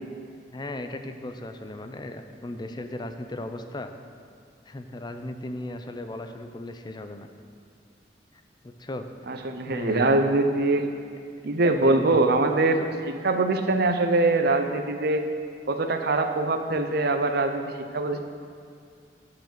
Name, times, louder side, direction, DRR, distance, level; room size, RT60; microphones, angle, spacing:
voice 1, 0.5-3.9 4.7-7.3 8.3-9.3 9.7-10.2 11.8-12.1 18.1-18.2, left 1 dB, 25° left, 7 dB, 0.5 m, -36 dB
voice 2, 9.3-10.9 11.4-15.3 15.7-18.2, right 2 dB, 60° right, 6 dB, 0.7 m, -23 dB
9.2 x 4.9 x 7.5 m, 2.3 s
head